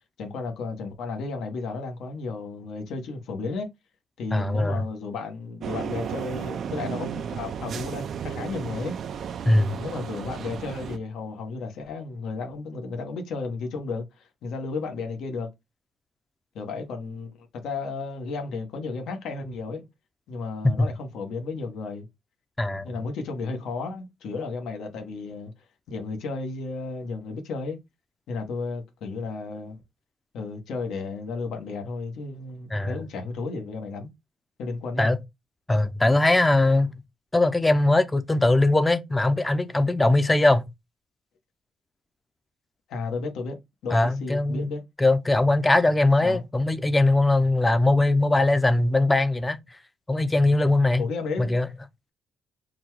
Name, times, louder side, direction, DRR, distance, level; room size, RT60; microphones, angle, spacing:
voice 1, 0.2-3.7 4.2-9.0 9.8-15.5 16.5-19.9 20.3-22.1 22.8-25.5 25.9-27.8 28.3-29.8 30.3-34.1 34.6-35.2 42.9-43.6 43.8-44.8 46.2-46.4 51.0-51.6, left 4 dB, 80° left, 1.2 m, -33 dB
voice 2, 4.3-4.9 9.4-9.7 20.6-20.9 22.6-22.9 32.7-33.0 35.0-35.2 35.7-37.0 37.3-40.7 43.9-44.7 45.0-49.6 50.1-51.0 51.4-51.7, left 2 dB, 15° left, 0.6 m, -21 dB
sound 1, 5.6-11.0, right 7 dB, 60° right, 0.5 m, -33 dB
3.9 x 2.3 x 4.6 m
cardioid pair, 90°, 0 cm